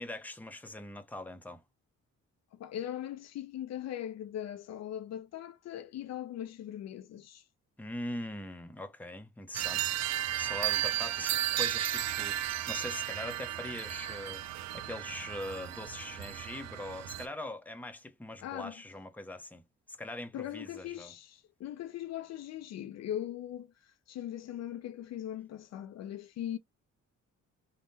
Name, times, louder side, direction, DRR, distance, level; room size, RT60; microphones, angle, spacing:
voice 1, 0.0-1.6 7.8-10.0 10.4-19.6 19.9-21.1, left 1 dB, 5° left, 0.7 m, -42 dB
voice 2, 2.5-7.4 18.4-18.8 20.3-26.6, left 11 dB, 60° left, 0.4 m, -40 dB
sound 1, 9.5-17.3, right 13 dB, 60° right, 0.4 m, -34 dB
3.5 x 2.1 x 2.7 m
cardioid pair, 90°, 30 cm